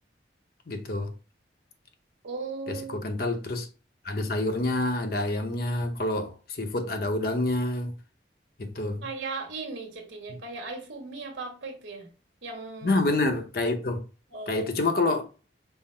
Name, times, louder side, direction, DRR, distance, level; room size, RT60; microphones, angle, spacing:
voice 1, 0.7-1.1 2.7-3.7 4.0-7.9 8.6-9.0 10.3-10.4 12.8-14.0 14.5-15.2, left 2 dB, 55° left, 0.7 m, -27 dB
voice 2, 2.2-3.0 9.0-12.1 12.4-13.0 14.3-14.7, right 3 dB, 85° right, 1.2 m, -37 dB
5.6 x 2.0 x 4.3 m
head